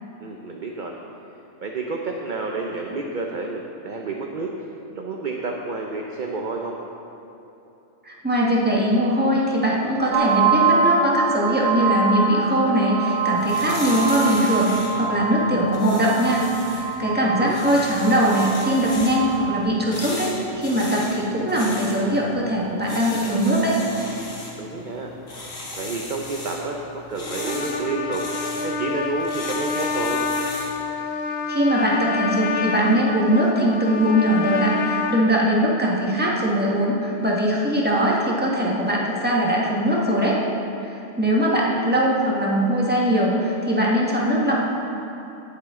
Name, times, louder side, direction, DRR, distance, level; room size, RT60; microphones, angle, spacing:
voice 1, 0.2-0.9 1.6-4.5 4.9-6.8 17.2-17.6 24.6-25.1 25.8-28.2 28.6-30.2 41.3-41.8, right 3 dB, 45° right, 0 dB, 0.8 m, -30 dB
voice 2, 8.0-20.3 20.5-23.8 31.5-40.4 40.8-44.6, equal, 10° right, -4 dB, 1.5 m, -21 dB
sound 1, 10.1-19.6, right 5 dB, 75° right, 1.0 m, -25 dB
sound 2, 13.2-30.8, left 2 dB, 85° left, 2.3 m, -37 dB
Trumpet, 27.2-35.2, left 4 dB, 55° left, 1.0 m, -27 dB
17.0 x 7.5 x 3.7 m, 3.0 s
omnidirectional pair, 1.3 m